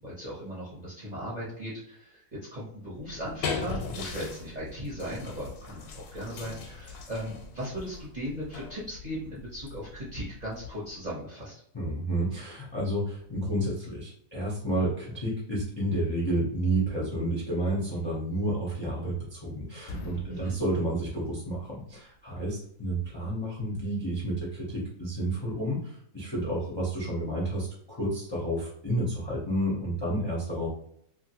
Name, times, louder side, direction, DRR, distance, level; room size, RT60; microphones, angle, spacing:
voice 1, 0.0-2.2 2.5-11.5 20.2-20.5, equal, 35° right, -7 dB, 0.8 m, -37 dB
sound 1, 3.0-11.0, left 5 dB, 90° left, 1.1 m, -40 dB
voice 2, 11.7-30.7, right 1 dB, 30° left, -6 dB, 0.5 m, -30 dB
sound 2, 19.3-19.5 19.8-21.9, left 1 dB, 70° left, 0.8 m, -43 dB
2.9 x 2.5 x 2.8 m, 0.68 s
omnidirectional pair, 1.6 m